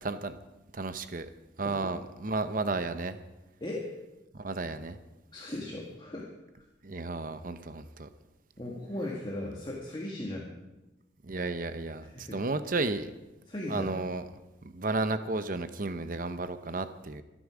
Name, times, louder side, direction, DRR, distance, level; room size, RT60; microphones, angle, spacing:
voice 1, 0.0-0.4 0.7-1.3 1.6-3.2 4.3-5.0 6.8-8.1 11.2-13.1 13.7-14.2 14.7-17.2, right 3 dB, 45° right, 11 dB, 0.8 m, -33 dB
voice 2, 1.6-1.9 3.6-3.9 5.3-6.3 8.6-10.5 12.1-12.4 13.5-14.0, left 1 dB, 25° left, -3 dB, 1.9 m, -37 dB
25.5 x 10.0 x 5.0 m, 1.0 s
head